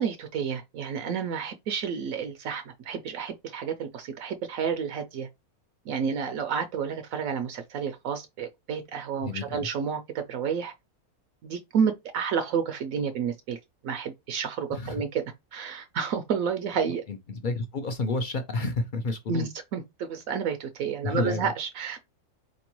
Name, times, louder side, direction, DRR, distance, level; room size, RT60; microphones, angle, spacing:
voice 1, 0.0-5.3 5.9-10.7 11.4-15.2 15.5-17.0 19.3-22.0, right 6 dB, 75° right, 0.9 m, -30 dB
voice 2, 9.2-9.7 14.7-15.0 16.9-19.5 21.0-21.5, left 3 dB, 55° left, 0.5 m, -30 dB
4.3 x 2.9 x 3.0 m
omnidirectional pair, 1.5 m